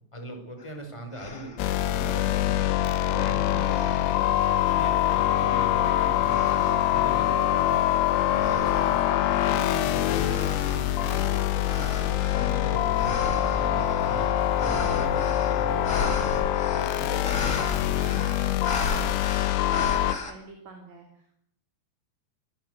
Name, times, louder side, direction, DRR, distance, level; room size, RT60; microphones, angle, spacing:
voice 1, 0.1-1.5 1.8-2.8 3.1-4.3 4.7-7.7 8.3-12.0 12.3-14.3 14.6-16.4 16.7-18.5, equal, 5° left, 5 dB, 4.3 m, -40 dB
sound 1, 0.6-0.7 1.1-1.7 2.3-3.2 3.6-4.5 5.1-5.6 6.2-7.0 7.5-20.3, left 3 dB, 35° left, 1.1 m, -36 dB
sound 2, 1.6-20.1, left 12 dB, 90° left, 4.1 m, -24 dB
voice 2, 20.3-21.3, right 3 dB, 40° right, 3 dB, 3.7 m, -48 dB
25.5 x 16.0 x 8.2 m, 0.69 s
omnidirectional pair, 5.9 m